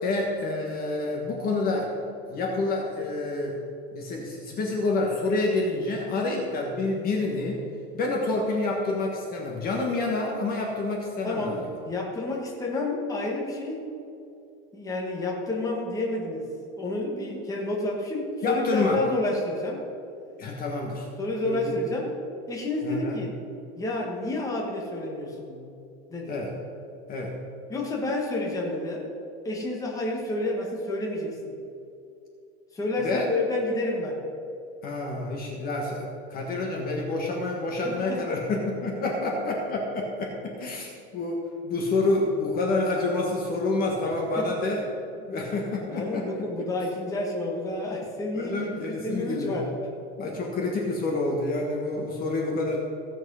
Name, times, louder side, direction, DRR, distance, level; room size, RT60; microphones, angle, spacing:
voice 1, 0.0-1.9 2.3-3.6 3.9-7.6 7.9-11.7 18.4-19.0 20.4-21.1 21.4-21.7 22.8-23.2 26.3-26.5 27.1-27.3 33.0-33.3 34.8-44.8 45.3-46.5 48.3-49.6 50.2-52.8, left 2 dB, 30° left, 0 dB, 1.4 m, -28 dB
voice 2, 11.2-11.6 11.8-13.9 14.7-16.5 16.8-19.8 21.2-22.2 22.5-23.3 23.8-25.6 26.1-26.4 27.7-29.1 29.4-31.6 32.7-34.2 37.8-38.4 44.0-44.5 45.9-49.7, left 2 dB, 10° left, -2 dB, 1.5 m, -30 dB
16.0 x 6.1 x 5.5 m, 2.6 s
supercardioid pair, 160°, 32 cm